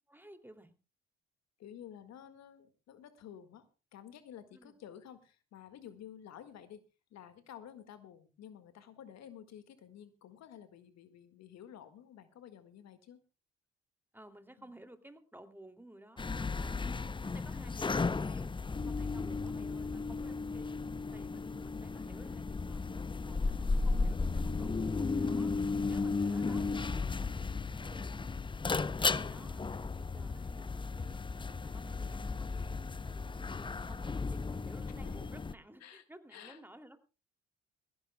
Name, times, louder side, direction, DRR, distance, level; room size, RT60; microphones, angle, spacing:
voice 1, 0.1-0.8 4.5-4.8 14.1-16.8 17.2-18.5 18.8-20.8 21.1-22.8 23.2-25.5 25.9-28.3 28.9-31.2 31.6-37.0, right 1 dB, 5° right, 8 dB, 2.6 m, -55 dB
voice 2, 1.6-6.8 7.1-13.2 14.6-14.7 21.5-21.7 29.0-29.6 35.0-35.2 35.8-36.0 36.3-36.6, left 9 dB, 60° left, 11 dB, 1.8 m, -52 dB
sound 1, 16.2-35.5, left 4 dB, 15° left, 0.6 m, -35 dB
20.5 x 16.0 x 2.2 m, 0.31 s
hypercardioid pair, 50°, 30 cm